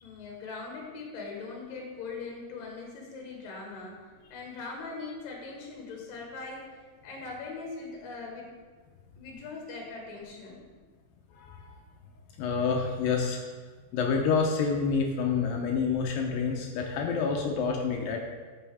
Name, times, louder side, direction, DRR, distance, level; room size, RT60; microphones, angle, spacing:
voice 1, 0.0-4.0 4.3-8.5 9.2-10.6, left 4 dB, 60° left, -1 dB, 2.8 m, -41 dB
voice 2, 12.4-13.5 13.9-18.2, left 5 dB, 80° left, 1 dB, 2.1 m, -28 dB
12.5 x 6.6 x 3.5 m, 1.4 s
omnidirectional pair, 4.9 m